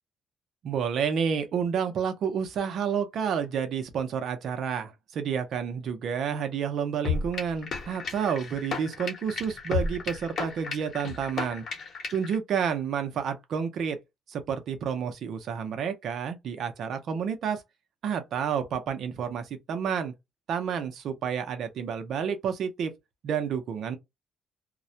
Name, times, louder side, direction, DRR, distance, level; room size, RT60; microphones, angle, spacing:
voice 1, 0.6-11.6 12.1-14.0 14.3-17.6 18.0-20.1 20.5-22.9 23.2-24.0, right 7 dB, 70° right, 0.6 m, -30 dB
sound 1, 7.0-12.4, left 5 dB, 60° left, 1.0 m, -33 dB
2.3 x 2.1 x 2.7 m
cardioid pair, 90°, 0 cm